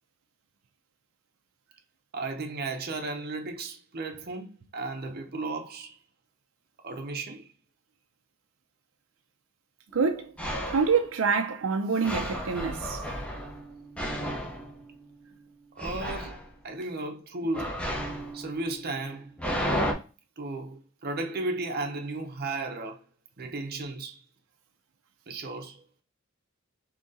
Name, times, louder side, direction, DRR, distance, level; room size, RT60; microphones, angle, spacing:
voice 1, 2.1-6.0 6.8-7.5 15.7-17.8 18.3-19.3 20.4-23.0 23.4-24.2 25.3-25.9, right 2 dB, 50° right, 0.7 m, -35 dB
sound 1, 9.9-10.0 10.4-11.0 12.0-15.3 15.8-16.5 17.5-19.9, equal, 5° left, 0.6 m, -33 dB
voice 2, 9.9-10.3 10.7-13.0, right 5 dB, 90° right, 0.5 m, -26 dB
3.8 x 2.8 x 2.6 m
head